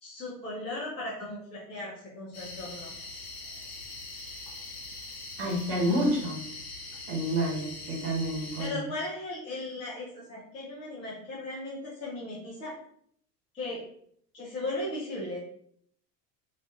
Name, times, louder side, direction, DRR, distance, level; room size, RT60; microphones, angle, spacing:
voice 1, 0.0-2.9 8.6-12.7 13.5-13.8 14.3-15.4, left 2 dB, 15° left, -8 dB, 0.4 m, -37 dB
sound 1, 2.3-8.7, left 3 dB, 65° left, 1.2 m, -42 dB
voice 2, 5.4-6.4 7.1-8.8, right 1 dB, 50° right, -4 dB, 1.1 m, -29 dB
2.4 x 2.4 x 2.4 m, 0.66 s
figure-of-eight pair, 75°, 50 cm